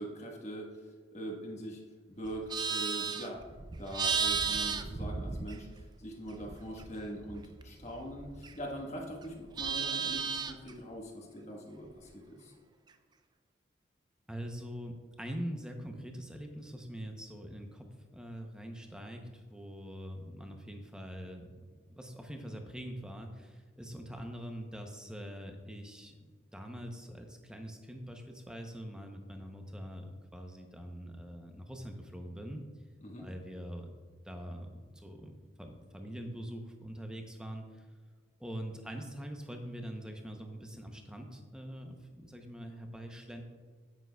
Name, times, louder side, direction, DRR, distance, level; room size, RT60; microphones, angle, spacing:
voice 1, 0.0-1.8 2.1-3.4 3.8-12.5 33.0-33.2, right 1 dB, 35° left, 0 dB, 1.3 m, -42 dB
Livestock farm animals working animals, 2.2-6.0 6.3-8.8 9.1-10.7, right 5 dB, 20° right, 0.3 m, -35 dB
voice 2, 14.3-21.6 21.9-32.6 33.2-33.9 34.2-37.9 38.4-43.4, equal, 5° right, 3 dB, 0.7 m, -44 dB
9.2 x 8.7 x 2.3 m, 1.5 s
head